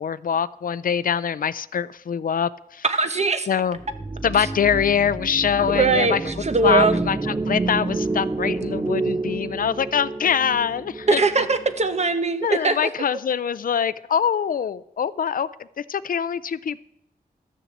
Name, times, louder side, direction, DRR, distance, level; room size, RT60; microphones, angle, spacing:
voice 1, 0.0-2.8 3.5-3.8 4.2-6.2 6.6-11.2 12.4-15.5 15.8-16.8, left 7 dB, 65° left, 0.4 m, -24 dB
voice 2, 2.8-3.5 5.7-7.0 11.1-12.8, right 3 dB, 45° right, 1.1 m, -20 dB
sound 1, 3.8-12.1, right 3 dB, 20° right, 0.3 m, -29 dB
13.0 x 7.0 x 7.3 m
wide cardioid pair, 110°, 15 cm